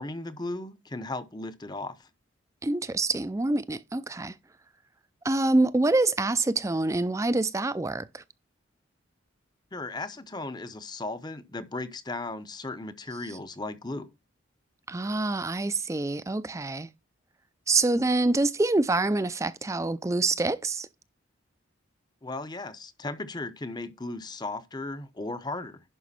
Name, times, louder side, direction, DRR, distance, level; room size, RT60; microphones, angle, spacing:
voice 1, 0.0-2.1 9.7-14.1 22.2-25.8, left 2 dB, 20° left, 0.7 m, -36 dB
voice 2, 2.6-4.3 5.2-8.2 14.9-16.9 17.7-20.9, right 2 dB, 15° right, 0.4 m, -26 dB
11.0 x 5.2 x 4.2 m
head